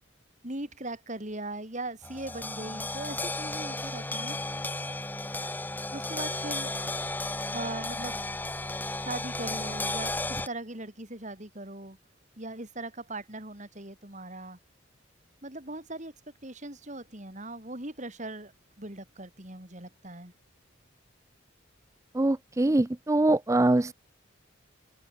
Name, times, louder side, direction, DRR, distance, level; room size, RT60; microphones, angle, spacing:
voice 1, 0.4-4.4 5.9-6.7 7.5-8.2 9.0-12.0 12.4-14.6 15.4-16.1 16.4-18.5 18.8-20.3, right 2 dB, 35° right, 3.8 m, -39 dB
sound 1, 2.0-10.5, left 2 dB, 10° left, 0.8 m, -34 dB
voice 2, 22.1-23.9, right 2 dB, 15° right, 0.4 m, -23 dB
open air
head